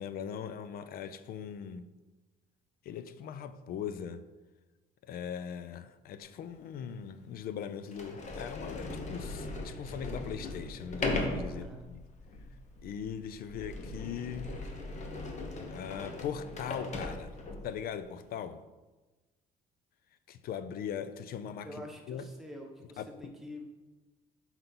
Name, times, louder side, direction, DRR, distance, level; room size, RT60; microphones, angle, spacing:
voice 1, 0.0-1.9 2.8-4.2 5.0-12.0 12.8-14.5 15.7-17.4 17.6-18.6 20.3-21.7 22.1-22.3 23.0-23.3, left 8 dB, 60° left, 0.5 m, -40 dB
Sliding door, 6.5-6.6 7.3-7.4 7.9-17.8, left 2 dB, 45° left, 1.1 m, -39 dB
voice 2, 11.5-11.9 21.6-23.6, left 1 dB, ahead, 1.2 m, -46 dB
5.5 x 4.0 x 6.0 m
cardioid pair, 110°, 17 cm